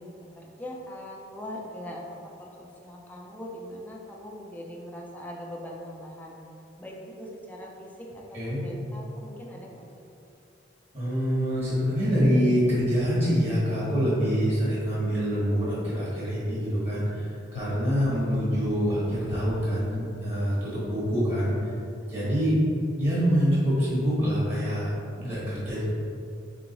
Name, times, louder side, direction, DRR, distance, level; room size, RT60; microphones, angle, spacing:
voice 1, 0.0-6.4 6.8-9.9, equal, 10° left, -2 dB, 0.4 m, -41 dB
voice 2, 10.9-21.5 22.1-22.6 23.0-24.9 25.1-25.8, equal, 30° right, -9 dB, 1.1 m, -25 dB
sound 1, 17.5-19.7, left 2 dB, 80° left, 0.3 m, -41 dB
3.4 x 3.1 x 3.9 m, 2.5 s
head